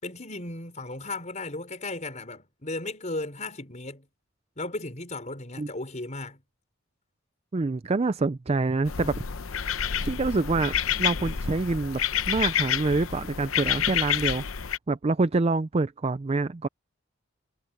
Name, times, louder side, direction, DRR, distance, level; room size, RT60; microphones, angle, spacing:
voice 1, 0.0-4.1 4.6-6.4, left 2 dB, 35° left, 5.2 m, -35 dB
voice 2, 7.5-9.2 10.0-12.0 12.3-16.7, right 3 dB, 30° right, 0.4 m, -26 dB
sound 1, 8.9-14.8, left 9 dB, 85° left, 0.8 m, -28 dB
head